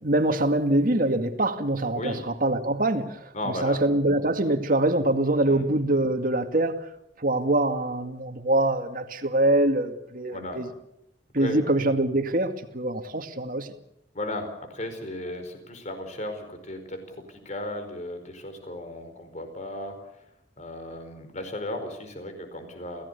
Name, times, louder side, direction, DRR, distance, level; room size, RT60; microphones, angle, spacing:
voice 1, 0.0-6.9 7.2-10.7 11.3-13.7, right 1 dB, 50° right, 2.1 m, -24 dB
voice 2, 3.3-3.8 5.5-5.6 10.3-10.6 11.4-11.6 14.1-19.9 20.6-23.0, left 1 dB, 40° left, 4.8 m, -35 dB
29.0 x 17.0 x 6.9 m
head